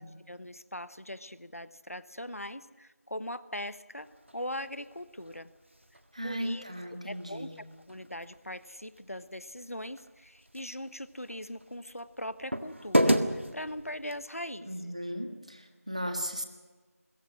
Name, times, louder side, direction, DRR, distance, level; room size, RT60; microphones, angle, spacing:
voice 1, 0.0-4.1 4.3-5.5 6.2-6.6 7.0-7.5 7.9-14.9, left 1 dB, 65° left, 14 dB, 1.2 m, -40 dB
sound 1, 4.0-14.3, equal, 50° right, 1.7 m, -35 dB
voice 2, 6.1-7.6 14.7-16.4, equal, 25° right, 6 dB, 1.6 m, -36 dB
25.0 x 21.5 x 6.2 m, 1.4 s
figure-of-eight pair, 180°, 8 cm